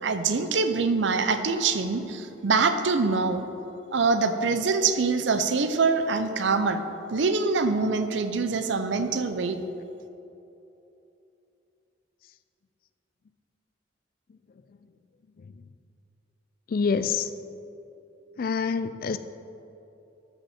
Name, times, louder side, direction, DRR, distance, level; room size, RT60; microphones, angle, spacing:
voice 1, 0.0-3.5 3.9-6.8 7.1-9.6, right 4 dB, 70° right, 9 dB, 0.6 m, -24 dB
voice 2, 16.7-17.3 18.4-19.2, left 5 dB, 50° left, 12 dB, 0.3 m, -26 dB
13.0 x 5.9 x 4.3 m, 2.9 s
head